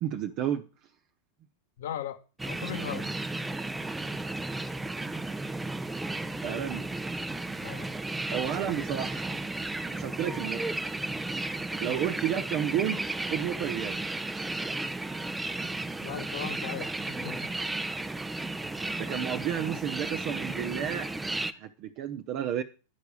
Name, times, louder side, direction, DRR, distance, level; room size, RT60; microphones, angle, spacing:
voice 1, 0.0-0.7 6.4-6.9 8.3-9.3 9.8-10.8 11.8-13.0 13.3-14.0 19.0-22.6, right 10 dB, 45° right, 0.9 m, -32 dB
voice 2, 1.8-2.2 2.4-3.1 7.6-7.9 11.9-12.0 16.0-17.5, left 10 dB, 70° left, 1.2 m, -38 dB
sound 1, 2.4-21.5, right 2 dB, 10° right, 0.7 m, -34 dB
11.5 x 4.8 x 7.1 m
hypercardioid pair, 95°, 0 cm